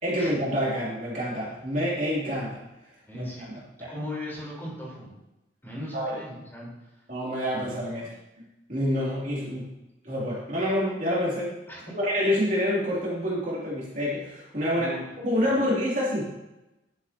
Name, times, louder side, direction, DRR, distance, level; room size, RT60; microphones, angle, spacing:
voice 1, 0.0-2.6 3.1-3.2 3.5-3.9 5.9-6.2 7.1-8.0 8.7-9.7 10.0-11.5 11.9-14.9 15.2-16.2, equal, 45° right, -6 dB, 2.8 m, -27 dB
voice 2, 3.0-5.1 5.6-6.7 7.6-8.1 11.7-11.8 14.7-15.7, left 1 dB, 10° left, -5 dB, 4.0 m, -38 dB
11.5 x 9.2 x 2.9 m, 0.97 s
head